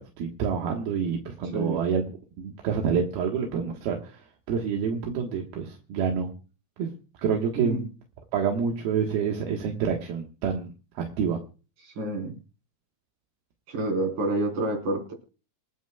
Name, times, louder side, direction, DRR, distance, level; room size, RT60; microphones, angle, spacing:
voice 1, 0.0-2.0 2.4-4.2 4.5-6.3 6.8-6.9 7.2-7.9 8.3-10.7 11.0-11.4, right 6 dB, 80° right, 1 dB, 3.3 m, -27 dB
voice 2, 11.8-12.3 13.7-15.1, right 2 dB, 55° right, 1 dB, 5.5 m, -28 dB
27.5 x 9.2 x 2.3 m, 0.34 s
omnidirectional pair, 4.4 m